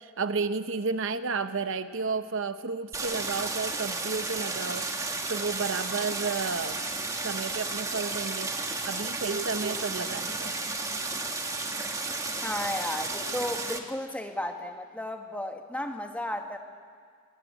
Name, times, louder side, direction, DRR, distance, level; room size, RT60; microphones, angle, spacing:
voice 1, 0.0-4.9 5.3-6.8 7.2-8.5 8.8-10.5, right 4 dB, 60° right, 10 dB, 0.8 m, -32 dB
Stream, 2.9-13.8, right 3 dB, 15° right, 1.4 m, -33 dB
voice 2, 12.4-16.6, left 1 dB, 5° left, 4 dB, 1.6 m, -34 dB
22.0 x 19.5 x 9.1 m, 2.1 s
head